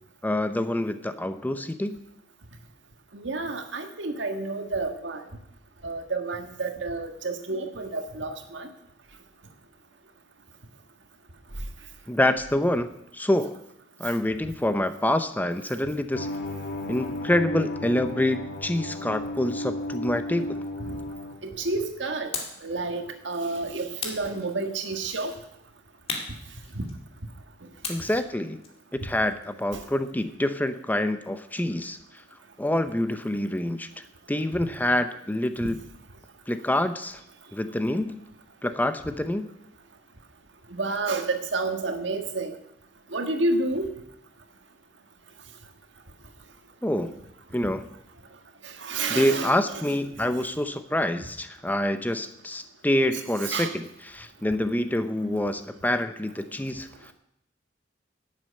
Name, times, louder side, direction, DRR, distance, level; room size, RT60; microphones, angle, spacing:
voice 1, 0.2-2.0 12.1-12.9 13.1-13.6 14.0-16.3 16.9-20.6 27.9-28.6 28.9-32.0 32.6-33.9 34.3-35.8 36.5-37.2 37.5-38.2 38.6-39.5 46.8-47.2 47.5-47.9 48.9-57.1, left 1 dB, 10° left, 10 dB, 0.6 m, -26 dB
voice 2, 3.1-5.2 5.8-8.7 20.9-21.0 21.4-22.3 22.6-25.3 26.7-26.8 29.7-29.8 40.7-42.5 43.1-43.9 48.6-49.5 53.4-53.7, right 3 dB, 75° right, 6 dB, 1.7 m, -30 dB
sound 1, 16.1-21.3, left 1 dB, 60° left, 2.3 m, -34 dB
sound 2, 22.3-22.7 24.0-24.9 26.1-27.2 27.8-30.1, left 4 dB, 35° left, 2.3 m, -37 dB
12.0 x 7.6 x 8.7 m, 0.78 s
head